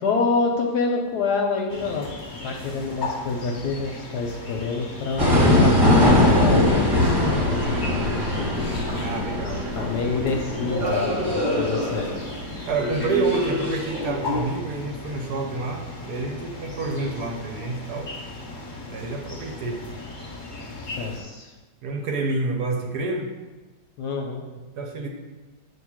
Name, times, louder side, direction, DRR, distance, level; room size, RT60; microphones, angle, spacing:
voice 1, 0.0-2.1 2.4-5.3 5.6-8.7 9.5-12.1 20.6-21.5 24.0-24.4, left 4 dB, 70° left, 2 dB, 1.0 m, -27 dB
sound 1, 1.7-21.2, left 2 dB, 35° left, 0.8 m, -35 dB
sound 2, 5.2-14.4, left 1 dB, 20° right, 1.0 m, -22 dB
voice 2, 8.9-9.9 12.7-18.1 18.9-19.8 21.8-23.3 24.8-25.1, right 3 dB, 65° right, 2 dB, 1.1 m, -28 dB
8.0 x 2.9 x 6.1 m, 1.2 s
omnidirectional pair, 2.1 m